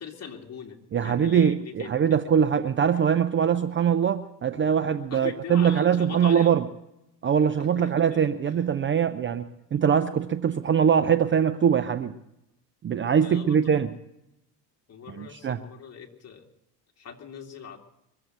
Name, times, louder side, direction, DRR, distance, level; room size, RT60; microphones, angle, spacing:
voice 1, 0.0-2.2 5.1-6.6 7.6-8.6 13.2-13.9 14.9-16.5 17.0-17.8, left 7 dB, 30° left, 1 dB, 2.6 m, -41 dB
voice 2, 0.9-6.6 7.2-12.1 12.8-13.9 15.2-15.6, right 8 dB, 25° right, 12 dB, 0.6 m, -22 dB
23.0 x 7.8 x 7.9 m, 0.86 s
supercardioid pair, 90°, 48 cm